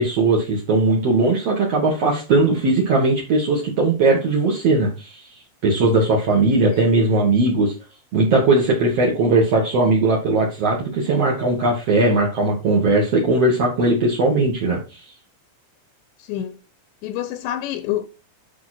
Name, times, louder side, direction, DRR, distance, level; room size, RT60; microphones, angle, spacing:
voice 1, 0.0-5.2 5.6-7.7 8.1-15.0, right 2 dB, 70° right, 1.5 m, -19 dB
voice 2, 16.2-16.6 17.0-18.2, left 12 dB, 85° left, 2.6 m, -27 dB
9.3 x 5.8 x 4.3 m
omnidirectional pair, 5.9 m